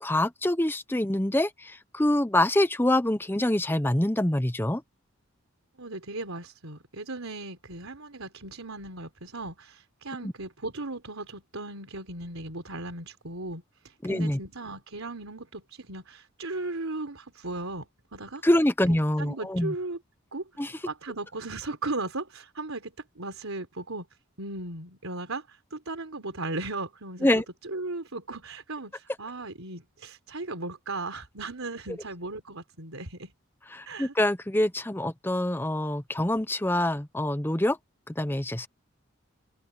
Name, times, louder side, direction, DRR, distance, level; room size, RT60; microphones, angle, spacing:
voice 1, 0.0-4.8 10.2-10.3 14.0-14.4 18.4-19.7 20.6-20.8 27.2-27.4 33.7-37.8 38.1-38.7, left 1 dB, 10° left, 0.7 m, -25 dB
voice 2, 5.8-18.4 19.2-20.0 20.3-20.5 20.9-24.1 24.4-33.3 33.9-34.1, right 2 dB, 85° right, 3.9 m, -37 dB
open air
head